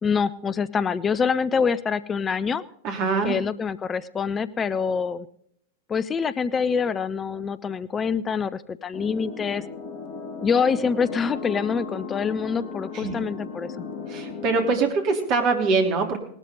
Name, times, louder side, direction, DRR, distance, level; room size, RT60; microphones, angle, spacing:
voice 1, 0.0-2.6 3.2-5.3 5.9-9.6 10.4-13.7, left 6 dB, 20° left, 16 dB, 0.6 m, -25 dB
voice 2, 2.8-3.4 12.9-13.2 14.1-16.2, right 4 dB, 40° right, 3 dB, 3.5 m, -23 dB
sound 1, 8.9-14.7, left 4 dB, 40° left, 2.0 m, -36 dB
19.5 x 13.0 x 3.9 m, 0.67 s
figure-of-eight pair, 90°, 0 cm